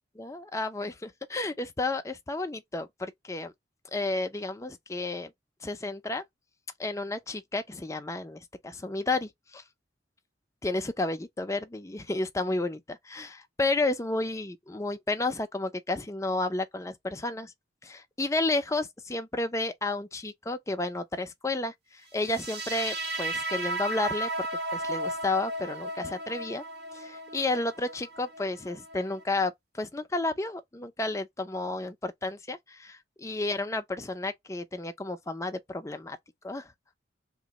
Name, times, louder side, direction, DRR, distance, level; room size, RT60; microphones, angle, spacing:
voice 1, 0.2-3.5 3.9-5.3 5.6-6.2 6.8-9.6 10.6-17.5 17.8-24.5 24.7-26.6 26.9-36.2 36.4-36.7, left 2 dB, 15° left, 0.5 m, -32 dB
sound 1, 22.2-29.2, right 1 dB, 60° right, 1.1 m, -35 dB
3.0 x 2.6 x 3.7 m
head